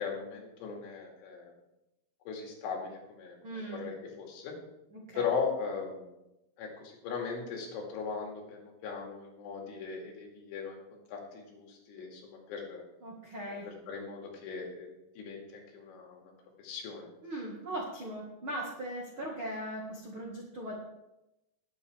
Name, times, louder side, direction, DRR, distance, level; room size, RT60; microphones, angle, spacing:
voice 1, 0.0-1.5 2.3-4.5 5.1-6.1 6.6-12.8 13.5-14.9 15.2-16.3 16.6-17.1, left 5 dB, 75° left, 0 dB, 4.7 m, -38 dB
voice 2, 3.4-3.9 4.9-5.3 13.0-13.7 17.2-20.7, right 1 dB, 75° right, -3 dB, 1.1 m, -39 dB
19.0 x 9.2 x 3.5 m, 0.92 s
omnidirectional pair, 5.7 m